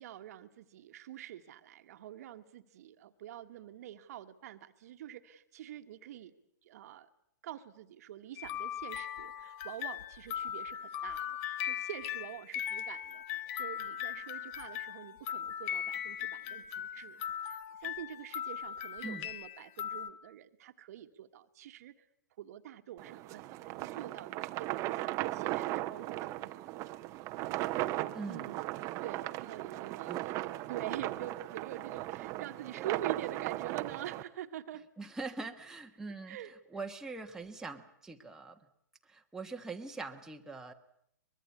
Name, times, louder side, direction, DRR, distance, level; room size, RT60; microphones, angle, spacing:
voice 1, 0.0-6.3 6.6-7.1 7.4-22.1 22.4-26.7 28.3-28.7 29.0-30.4 30.7-34.9 36.3-36.5, right 11 dB, 55° right, 9 dB, 1.4 m, -46 dB
sound 1, 8.4-20.1, left 10 dB, 40° left, 1.3 m, -39 dB
sound 2, 23.0-34.2, right 17 dB, 30° right, 0.9 m, -37 dB
voice 2, 28.1-28.5 30.1-30.3 35.0-36.4 36.7-38.6 39.0-40.7, right 3 dB, 5° right, 2 dB, 1.3 m, -42 dB
23.5 x 21.5 x 8.3 m, 0.73 s
hypercardioid pair, 125°, 10 cm